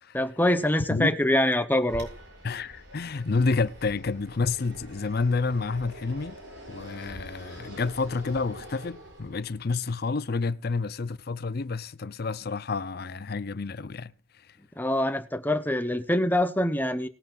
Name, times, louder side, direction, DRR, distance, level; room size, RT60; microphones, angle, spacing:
voice 1, 0.1-2.1 14.8-17.1, left 1 dB, 10° left, 0.9 m, -24 dB
Fixed-wing aircraft airplane, 1.9-9.7, equal, 65° right, 7.1 m, -45 dB
voice 2, 2.4-6.4 6.7-14.1, left 4 dB, 50° left, 0.6 m, -29 dB
19.5 x 9.7 x 2.5 m
head